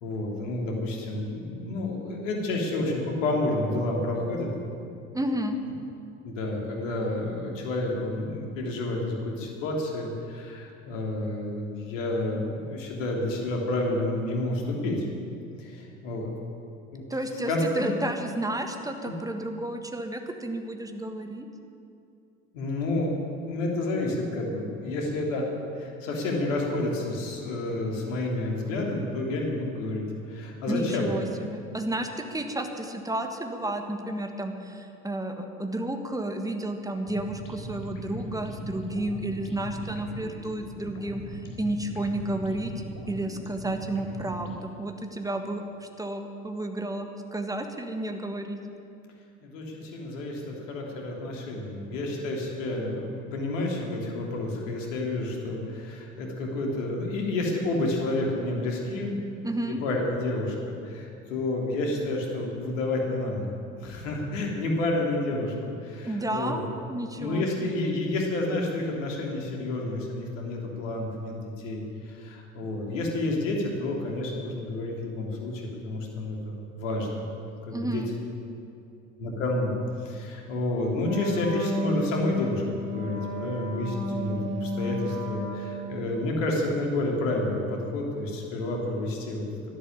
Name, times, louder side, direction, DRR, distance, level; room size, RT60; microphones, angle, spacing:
voice 1, 0.0-4.5 6.2-15.0 15.6-16.3 16.9-17.0 17.5-17.9 19.0-19.1 22.5-23.2 23.5-25.5 25.7-31.1 49.4-59.1 59.8-65.5 65.8-66.6 67.1-77.3 77.7-78.0 79.2-79.7 80.0-89.4, left 2 dB, 65° left, 0 dB, 3.2 m, -30 dB
voice 2, 5.1-5.6 17.1-21.5 30.7-42.7 43.1-48.6 59.4-59.8 66.0-66.6 66.9-67.7 77.7-78.1, right 1 dB, 10° right, 5 dB, 1.5 m, -32 dB
sound 1, 36.9-44.6, equal, 45° left, 3.6 m, -40 dB
Wind instrument woodwind instrument, 81.0-86.1, left 1 dB, 40° right, 4.1 m, -33 dB
12.0 x 11.5 x 8.7 m, 2.6 s
hypercardioid pair, 75°, 40 cm